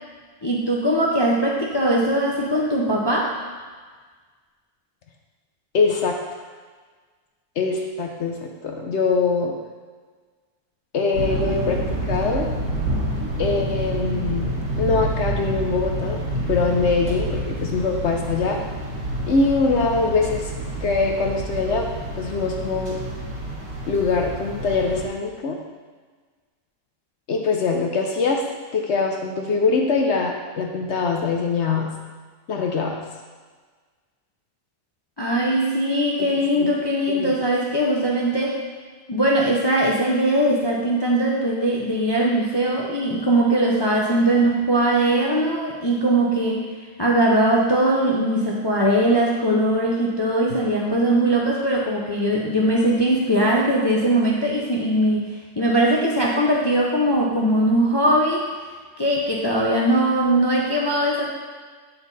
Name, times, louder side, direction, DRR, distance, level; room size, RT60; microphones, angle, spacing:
voice 1, 0.4-3.4 35.2-38.6 39.1-46.6 47.0-55.3 55.6-58.5 59.0-61.3, right 1 dB, 35° left, -3 dB, 0.4 m, -20 dB
voice 2, 5.7-6.2 7.6-9.5 10.9-12.5 13.4-16.2 16.5-18.6 19.3-20.5 20.8-21.9 22.2-23.0 23.9-25.6 27.3-28.4 28.7-31.9 32.5-33.0 36.2-36.3 36.6-36.7 37.1-37.3, left 4 dB, 60° left, 2 dB, 0.8 m, -23 dB
sound 1, 11.1-25.0, right 1 dB, 60° right, 2.3 m, -28 dB
9.0 x 4.2 x 4.0 m, 1.5 s
omnidirectional pair, 1.6 m